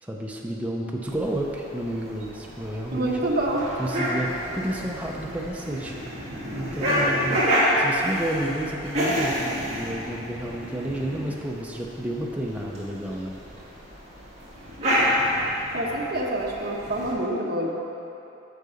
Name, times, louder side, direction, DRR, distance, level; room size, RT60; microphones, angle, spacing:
voice 1, 0.0-3.2 3.8-6.0 6.5-7.4 7.8-13.4, right 1 dB, 5° right, -2 dB, 0.5 m, -31 dB
sound 1, 1.0-17.1, equal, 35° right, 1.9 m, -29 dB
voice 2, 2.9-3.7 15.7-17.7, right 1 dB, 50° right, -1 dB, 0.9 m, -26 dB
6.7 x 6.5 x 5.0 m, 2.9 s
head